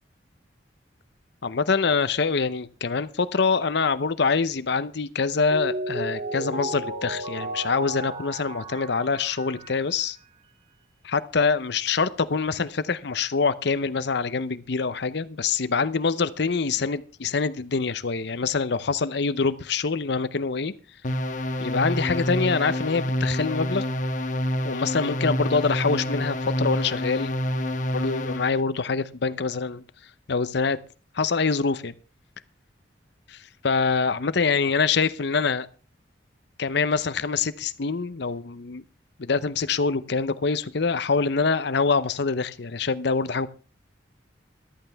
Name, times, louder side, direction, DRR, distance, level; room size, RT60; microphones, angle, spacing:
voice 1, 1.4-10.2 11.0-20.7 21.6-23.8 24.6-27.3 27.9-29.8 30.3-30.8 31.1-31.9 33.6-35.7 36.6-38.8 39.2-43.5, left 4 dB, 65° left, 14 dB, 0.7 m, -25 dB
Mallet percussion, 5.2-10.2, right 2 dB, 35° right, 1.8 m, -34 dB
sound 1, 21.0-28.6, equal, 40° left, 1.3 m, -28 dB
14.5 x 13.0 x 3.5 m, 0.34 s
head